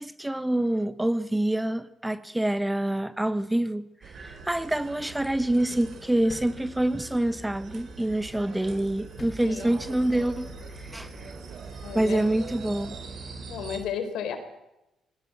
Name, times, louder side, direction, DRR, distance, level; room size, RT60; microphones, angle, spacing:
voice 1, 0.0-10.5 10.8-11.3 11.9-13.0, right 1 dB, 10° right, 1.2 m, -26 dB
sound 1, 4.0-13.8, right 4 dB, 60° right, 4.2 m, -42 dB
sound 2, 6.3-7.2 9.2-10.1, left 4 dB, 40° left, 2.4 m, -47 dB
voice 2, 9.4-9.8 11.8-12.2 13.5-14.4, left 7 dB, 80° left, 4.1 m, -33 dB
21.0 x 19.0 x 8.0 m
cardioid pair, 90°, 0 cm